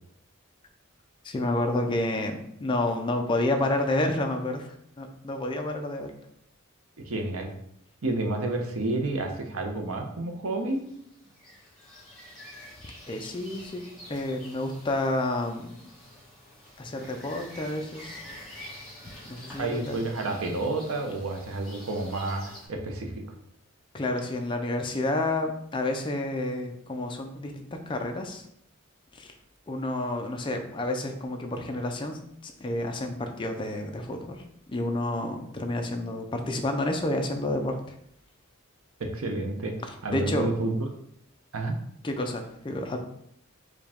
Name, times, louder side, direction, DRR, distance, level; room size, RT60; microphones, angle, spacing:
voice 1, 1.2-4.7 5.0-6.1 13.1-13.8 14.1-15.9 16.8-18.2 19.3-20.0 23.9-28.4 29.1-29.3 29.7-34.4 34.7-38.0 40.1-40.5 42.0-43.0, left 1 dB, 25° left, 4 dB, 0.4 m, -30 dB
voice 2, 7.1-7.5 8.0-10.8 19.6-23.2 39.0-39.7 40.0-40.7 41.5-41.8, right 2 dB, 80° right, 3 dB, 0.7 m, -30 dB
sound 1, 10.7-22.7, left 1 dB, ahead, 1.3 m, -47 dB
4.8 x 2.3 x 3.5 m, 0.71 s
head